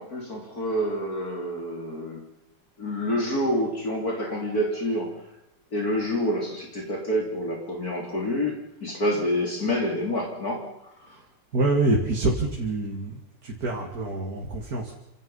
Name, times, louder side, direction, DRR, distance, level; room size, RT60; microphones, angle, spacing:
voice 1, 0.0-2.2 2.8-5.2 5.7-10.7, equal, 50° left, 0 dB, 3.8 m, -27 dB
voice 2, 11.5-14.9, right 2 dB, 50° right, 0 dB, 2.8 m, -26 dB
28.0 x 17.5 x 5.7 m, 0.87 s
omnidirectional pair, 2.0 m